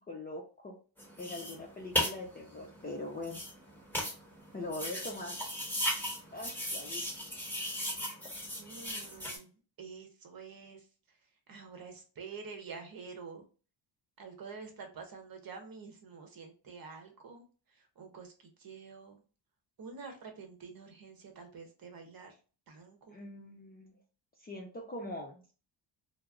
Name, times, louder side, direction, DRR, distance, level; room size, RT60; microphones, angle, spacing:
voice 1, 0.1-0.8 1.2-3.4 4.5-5.4 6.3-7.0 23.1-24.0 24.4-25.4, left 2 dB, 20° left, -2 dB, 0.4 m, -42 dB
sound 1, 1.0-9.4, equal, 5° left, 1.1 m, -37 dB
voice 2, 8.6-9.5 9.8-10.8 11.5-13.5 14.2-17.4 18.0-18.3 18.6-19.2 19.8-22.3 22.7-23.3, right 5 dB, 45° right, 4 dB, 0.8 m, -48 dB
2.2 x 2.0 x 3.6 m, 0.37 s
cardioid pair, 95°, 48 cm